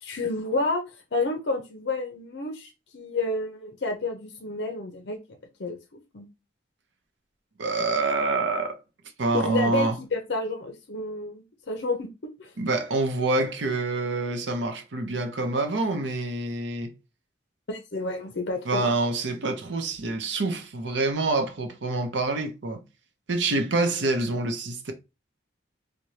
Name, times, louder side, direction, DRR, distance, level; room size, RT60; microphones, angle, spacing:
voice 1, 0.0-5.2 5.6-5.8 6.1-6.3 9.3-12.1 12.4-12.5 17.7-18.9, left 2 dB, 60° left, 0.6 m, -30 dB
voice 2, 7.6-8.8 9.2-10.0 12.6-16.9 18.6-22.8 23.3-24.9, right 2 dB, 75° right, 0.7 m, -26 dB
4.6 x 2.2 x 2.7 m
head